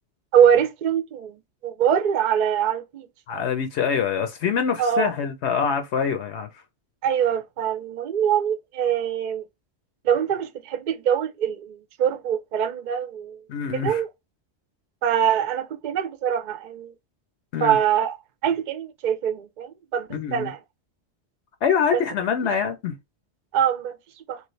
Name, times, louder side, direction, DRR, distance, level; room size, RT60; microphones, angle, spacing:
voice 1, 0.3-3.1 4.8-5.1 7.0-9.4 10.0-13.4 13.7-14.1 15.0-16.9 17.6-18.2 18.4-20.6 23.5-24.0 24.3-24.4, right 9 dB, 55° right, 0.5 m, -23 dB
voice 2, 3.3-6.5 13.5-14.0 17.5-17.8 20.1-20.5 21.6-22.9, left 7 dB, 80° left, 0.9 m, -25 dB
3.1 x 2.4 x 3.1 m
omnidirectional pair, 1.1 m